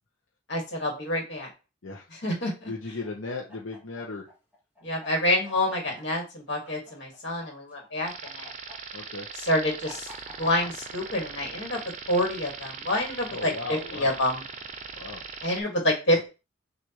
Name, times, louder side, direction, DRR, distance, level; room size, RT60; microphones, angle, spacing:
voice 1, 0.5-1.5 2.2-2.7 4.8-8.5 9.4-10.1 10.4-11.8 12.1-14.4 15.4-16.3, left 1 dB, 60° left, 0 dB, 1.7 m, -27 dB
voice 2, 2.6-4.3 8.9-9.3 13.3-14.1 14.9-15.2, left 3 dB, 85° left, -2 dB, 0.8 m, -36 dB
Chicken rooster, 3.0-7.5 7.7-13.3, left 2 dB, 10° right, 1.8 m, -47 dB
sound 1, 8.1-15.6, right 5 dB, 35° right, 0.5 m, -40 dB
6.2 x 2.5 x 2.9 m, 0.29 s
head